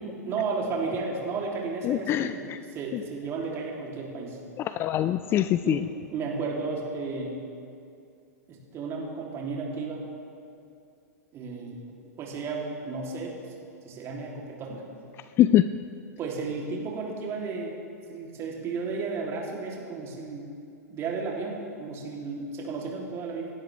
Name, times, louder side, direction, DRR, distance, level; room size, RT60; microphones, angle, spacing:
voice 1, 0.0-4.4 5.6-7.4 8.5-10.0 11.3-11.8 12.2-13.5 13.8-14.8 16.2-17.8 18.1-20.5 20.9-23.5, right 4 dB, 30° right, -2 dB, 3.2 m, -33 dB
voice 2, 1.9-2.6 4.6-5.8 15.4-15.7, left 13 dB, 25° left, 13 dB, 0.3 m, -23 dB
27.5 x 12.0 x 3.5 m, 2.5 s
figure-of-eight pair, 105°, 9 cm